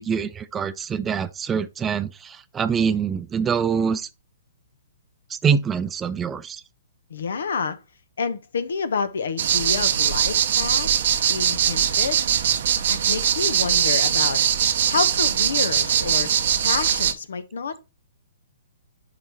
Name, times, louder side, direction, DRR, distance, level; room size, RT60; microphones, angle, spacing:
voice 1, 0.0-4.1 5.3-6.6, right 6 dB, 15° right, 0.5 m, -24 dB
voice 2, 7.1-7.8 8.2-12.2 12.9-14.4 14.9-16.3 16.6-17.8, left 5 dB, 70° left, 1.0 m, -28 dB
sound 1, 9.4-17.1, right 9 dB, 60° right, 0.8 m, -21 dB
11.0 x 4.0 x 3.1 m
hypercardioid pair, 125°, 0 cm